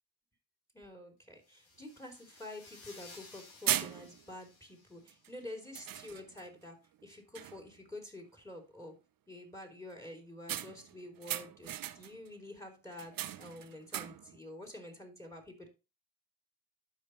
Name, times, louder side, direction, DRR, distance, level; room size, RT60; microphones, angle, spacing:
voice 1, 0.7-6.8 7.0-8.9 9.3-15.7, left 1 dB, 5° left, 4 dB, 3.3 m, -48 dB
sound 1, 1.4-5.3, left 3 dB, 80° left, 2.8 m, -57 dB
sound 2, 1.8-1.9 2.3-2.4 3.1-3.3 3.7-4.4 5.1-5.3 5.7-6.5 6.9-7.1 7.3-7.8 10.5-12.3 12.9-14.4, right 12 dB, 45° right, 0.7 m, -38 dB
12.0 x 5.1 x 3.2 m, 0.30 s
hypercardioid pair, 50°, 47 cm